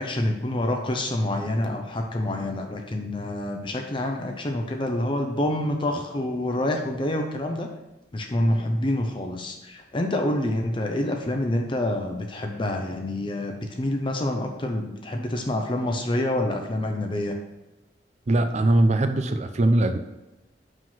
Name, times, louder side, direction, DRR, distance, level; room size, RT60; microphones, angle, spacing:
voice 1, 0.0-7.7 8.1-17.4, left 1 dB, 30° left, 3 dB, 0.6 m, -27 dB
voice 2, 18.3-20.0, right 1 dB, 40° right, 8 dB, 0.5 m, -21 dB
5.8 x 4.9 x 5.7 m, 1.0 s
head